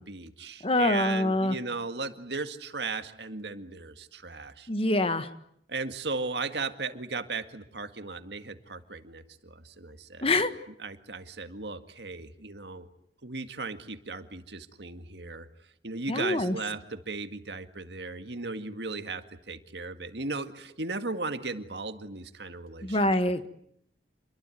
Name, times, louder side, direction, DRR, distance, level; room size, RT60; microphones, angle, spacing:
voice 1, 0.0-4.7 5.7-10.3 10.8-12.9 13.2-15.5 15.8-23.0, right 3 dB, 70° right, 9 dB, 2.0 m, -36 dB
voice 2, 0.6-1.6 4.7-5.3 10.2-10.5 16.1-16.5 22.8-23.5, left 1 dB, 35° left, 10 dB, 1.6 m, -25 dB
28.5 x 22.5 x 9.3 m, 0.72 s
head